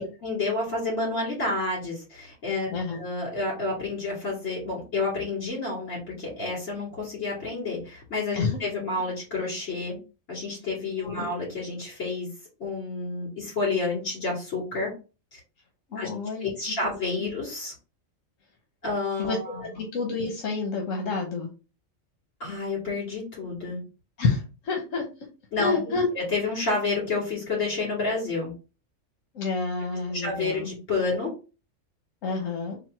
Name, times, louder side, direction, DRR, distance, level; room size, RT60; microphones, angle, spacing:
voice 1, 0.0-2.7 3.0-10.0 10.3-12.3 12.6-14.9 15.3-15.4 16.0-16.1 16.4-17.7 18.8-19.6 22.4-23.8 25.5-25.8 26.1-28.5 30.1-31.3, left 3 dB, 60° left, -4 dB, 2.4 m, -29 dB
voice 2, 15.9-16.5 19.2-21.5 24.2-25.0 25.6-26.1 29.3-30.7 32.2-32.8, left 4 dB, 80° left, 2 dB, 1.2 m, -29 dB
3.9 x 2.2 x 4.4 m, 0.32 s
omnidirectional pair, 1.3 m